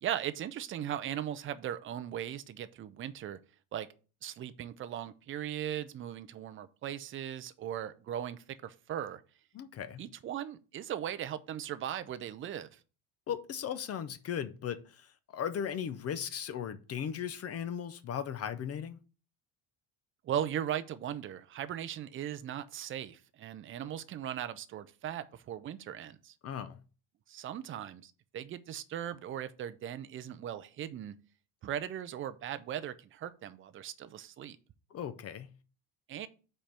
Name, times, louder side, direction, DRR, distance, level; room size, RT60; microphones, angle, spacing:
voice 1, 0.0-3.4 3.7-3.9 4.2-9.2 10.0-12.7 20.2-26.3 27.3-31.1 31.6-34.6 36.1-36.3, right 10 dB, 30° right, 0.4 m, -38 dB
voice 2, 9.5-10.0 13.3-19.0 26.4-26.8 34.9-35.5, left 8 dB, 35° left, 0.4 m, -37 dB
5.2 x 4.4 x 5.9 m
cardioid pair, 160°, 45 cm